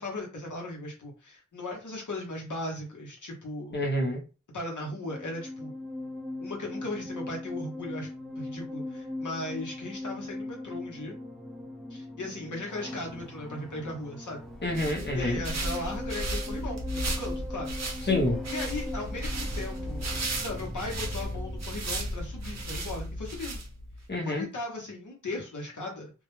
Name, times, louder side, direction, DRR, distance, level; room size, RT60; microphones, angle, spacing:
voice 1, 0.0-3.8 4.5-5.7 6.4-8.1 8.4-11.1 11.9-14.4 15.1-17.7 18.5-20.1 20.4-23.6 24.2-26.1, left 2 dB, 90° left, 0.8 m, -37 dB
voice 2, 3.7-4.2 14.6-15.4 18.0-18.4 24.1-24.5, left 1 dB, 35° left, 0.8 m, -27 dB
sound 1, 4.8-23.3, left 2 dB, ahead, 0.4 m, -40 dB
sound 2, 14.5-24.0, right 1 dB, 65° right, 0.6 m, -34 dB
2.3 x 2.1 x 3.0 m
wide cardioid pair, 55°, 30 cm